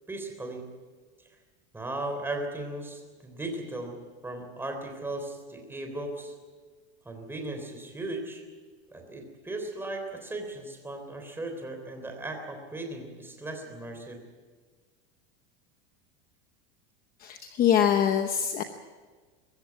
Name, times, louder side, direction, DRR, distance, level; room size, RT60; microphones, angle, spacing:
voice 1, 0.1-0.6 1.7-4.0 4.2-6.3 7.1-8.4 8.9-14.2, right 2 dB, 5° right, 3 dB, 3.4 m, -37 dB
voice 2, 17.2-18.6, left 9 dB, 25° left, 7 dB, 0.9 m, -24 dB
22.5 x 15.0 x 9.3 m, 1.4 s
supercardioid pair, 165°, 33 cm